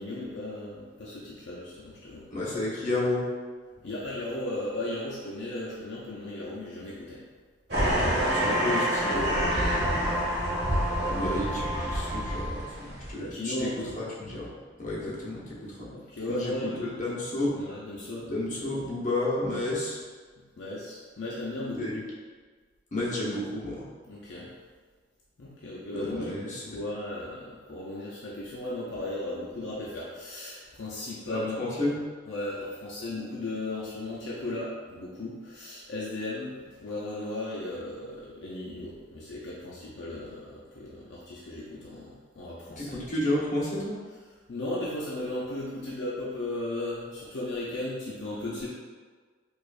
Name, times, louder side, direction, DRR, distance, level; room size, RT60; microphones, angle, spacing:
voice 1, 0.0-2.3 3.8-7.2 10.5-10.6 13.2-14.0 14.8-15.1 15.9-17.1 17.6-18.3 20.6-21.9 24.1-24.5 25.4-26.3 26.7-31.8 32.3-43.0 44.5-48.7, left 1 dB, 70° left, -6 dB, 0.6 m, -36 dB
voice 2, 2.3-3.3 3.7-3.9 8.3-9.8 11.0-15.9 16.3-17.6 18.3-20.0 21.8-22.0 22.9-23.9 25.9-26.8 31.3-32.0 42.8-44.0, left 1 dB, 45° left, -7 dB, 1.0 m, -31 dB
sound 1, 7.7-13.1, equal, 60° right, 1.1 m, -28 dB
sound 2, 8.0-12.6, equal, 5° left, 0.3 m, -32 dB
4.7 x 2.4 x 2.4 m, 1.5 s
head